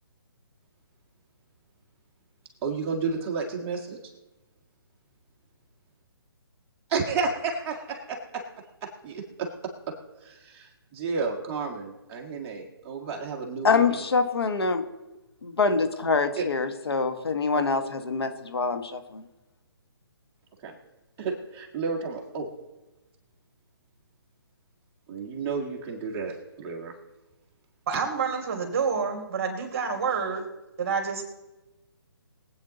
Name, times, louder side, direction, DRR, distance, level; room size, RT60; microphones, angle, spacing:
voice 1, 2.6-4.0 6.9-8.2 8.8-9.5 10.2-13.9 17.5-17.6 20.6-20.8 21.2-22.5 25.1-26.9, right 4 dB, 20° right, 0 dB, 1.7 m, -31 dB
voice 2, 13.6-14.8 15.4-19.2, left 4 dB, 75° left, 8 dB, 1.5 m, -25 dB
voice 3, 27.9-30.4 30.8-31.2, right 5 dB, 35° right, 3 dB, 2.8 m, -28 dB
21.5 x 8.7 x 4.0 m, 1.0 s
hypercardioid pair, 155°, 13 cm